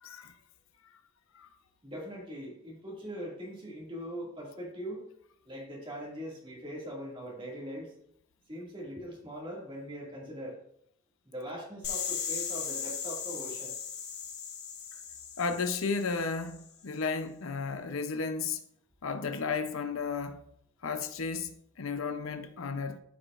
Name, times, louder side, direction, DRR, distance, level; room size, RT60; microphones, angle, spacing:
voice 1, 0.0-0.3 0.9-1.0 1.3-1.5 15.4-18.6 19.0-20.4 20.8-23.0, left 4 dB, 75° left, 0.6 m, -33 dB
voice 2, 1.8-5.0 5.5-7.9 8.5-10.6 11.2-13.7, equal, 25° right, 2.1 m, -41 dB
sound 1, 11.8-16.6, left 7 dB, 50° left, 1.3 m, -38 dB
13.0 x 5.0 x 2.5 m
head